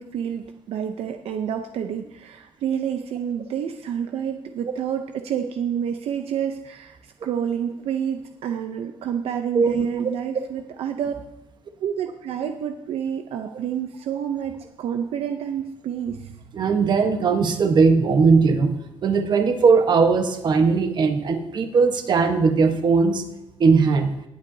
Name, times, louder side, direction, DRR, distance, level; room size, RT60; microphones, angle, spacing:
voice 1, 0.0-11.1 11.8-16.3, right 8 dB, 75° right, 6 dB, 0.7 m, -29 dB
voice 2, 9.5-10.1 16.5-18.8 19.0-23.2 23.6-24.1, right 5 dB, 45° right, 6 dB, 1.1 m, -19 dB
19.0 x 8.3 x 2.8 m, 0.92 s
cardioid pair, 135°, 10 cm